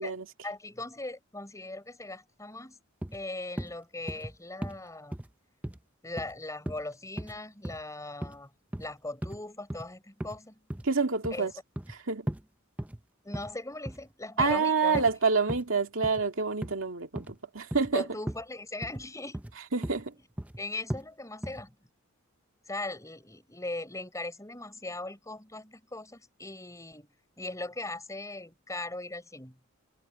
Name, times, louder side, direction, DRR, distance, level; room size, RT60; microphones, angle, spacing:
voice 1, 0.4-2.8 3.1-5.2 6.0-8.5 8.8-10.6 11.3-11.5 13.2-15.1 17.9-19.4 20.6-21.7 22.7-27.1 27.4-29.6, left 2 dB, 15° left, 6.2 m, -39 dB
sound 1, 3.0-3.2 3.6-3.7 4.1-4.3 4.6-4.8 5.1-5.3 5.6-5.8 6.2-6.3 6.7-6.8 7.2-7.4 7.6-7.8 8.2-8.4 8.7-8.9 9.2-9.4 9.7-9.8 10.2-10.4 10.7-10.9 11.2-12.0 12.3-12.4 12.8-13.0 13.3-13.5 13.8-14.1 14.4-14.6 14.9-15.1 15.5-15.6 16.0-16.2 16.6-16.7 17.2-17.4 17.7-17.9 18.3-18.4 18.8-19.1 19.3-19.5 19.8-20.0 20.4-20.6 20.9-21.0 21.4-21.6, right 1 dB, 5° right, 0.6 m, -36 dB
voice 2, 10.8-11.5 11.9-12.3 14.4-18.1 19.7-20.1, right 4 dB, 70° right, 2.4 m, -27 dB
head